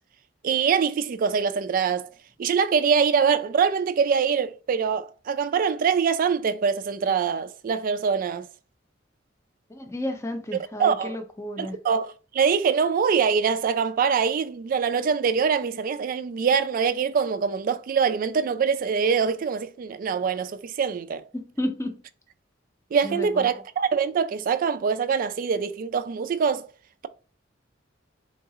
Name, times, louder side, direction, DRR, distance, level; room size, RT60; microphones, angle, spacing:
voice 1, 0.4-2.1 2.4-8.5 10.8-11.2 11.6-21.2 22.9-26.7, right 6 dB, 50° right, 0.3 m, -24 dB
voice 2, 9.7-11.8 21.3-22.0 23.0-23.5, left 1 dB, 15° left, 0.5 m, -32 dB
3.9 x 2.4 x 2.7 m
head